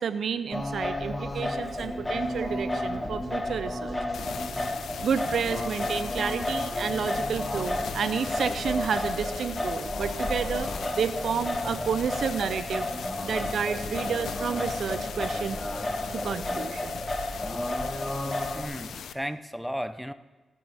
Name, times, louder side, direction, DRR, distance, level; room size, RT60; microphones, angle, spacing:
voice 1, 0.0-4.0 5.0-12.9 13.2-15.6 16.1-17.0, right 7 dB, 75° right, 12 dB, 0.5 m, -30 dB
Singing, 0.5-18.6, left 1 dB, 15° left, 1.2 m, -32 dB
sound 1, 1.6-14.6, left 2 dB, 50° left, 2.8 m, -50 dB
sound 2, 4.1-19.1, left 7 dB, 80° left, 0.5 m, -39 dB
voice 2, 18.5-20.1, equal, ahead, 11 dB, 0.6 m, -34 dB
17.0 x 9.1 x 3.4 m, 1.2 s
cardioid pair, 70°, 0 cm